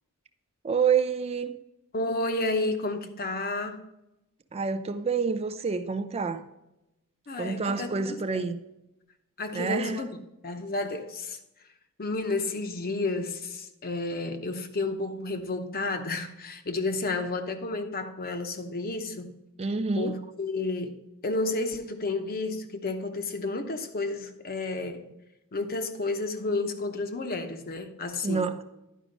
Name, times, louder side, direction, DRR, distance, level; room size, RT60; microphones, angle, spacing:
voice 1, 0.6-1.6 4.5-6.4 7.4-8.6 9.5-10.1 19.6-20.2 28.2-28.6, right 5 dB, 25° right, 0.4 m, -28 dB
voice 2, 1.9-3.8 7.3-8.4 9.4-10.2 10.4-11.4 12.0-19.3 20.0-21.0 21.2-25.1 25.5-28.5, left 2 dB, 40° left, 0.8 m, -31 dB
11.0 x 4.9 x 5.1 m
head